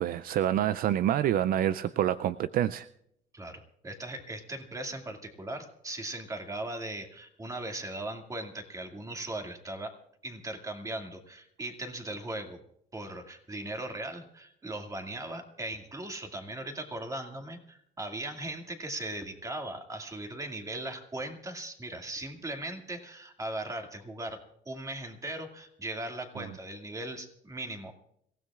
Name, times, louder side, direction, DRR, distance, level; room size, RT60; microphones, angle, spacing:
voice 1, 0.0-2.9, right 11 dB, 60° right, 15 dB, 0.4 m, -27 dB
voice 2, 3.3-9.9 10.2-12.6 12.9-24.4 24.7-28.0, right 1 dB, 20° right, 4 dB, 2.2 m, -38 dB
26.5 x 16.0 x 2.4 m, 0.73 s
cardioid pair, 110°, 17 cm